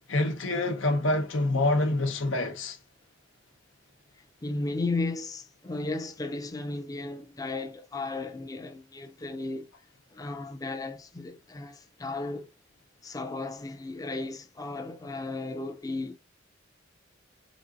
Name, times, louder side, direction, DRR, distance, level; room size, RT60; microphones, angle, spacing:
voice 1, 0.1-2.8, left 2 dB, 90° left, 1.0 m, -26 dB
voice 2, 4.4-9.7 10.1-12.5 13.0-16.2, left 3 dB, 20° left, 0.5 m, -35 dB
4.1 x 3.7 x 2.5 m
head